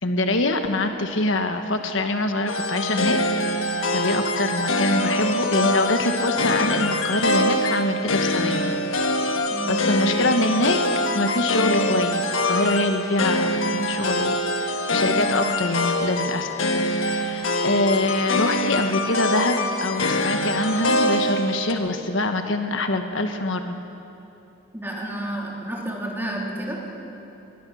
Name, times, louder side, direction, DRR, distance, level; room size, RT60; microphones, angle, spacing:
voice 1, 0.0-3.2 3.6-3.7 3.9-8.7 9.7-10.8 11.1-16.7 17.0-23.8, left 2 dB, 75° left, 6 dB, 1.3 m, -24 dB
sound 1, 2.5-21.7, left 1 dB, 90° left, 1.4 m, -24 dB
voice 2, 9.5-9.8 24.7-26.8, right 1 dB, 10° right, -2 dB, 3.3 m, -30 dB
22.0 x 20.5 x 6.3 m, 3.0 s
head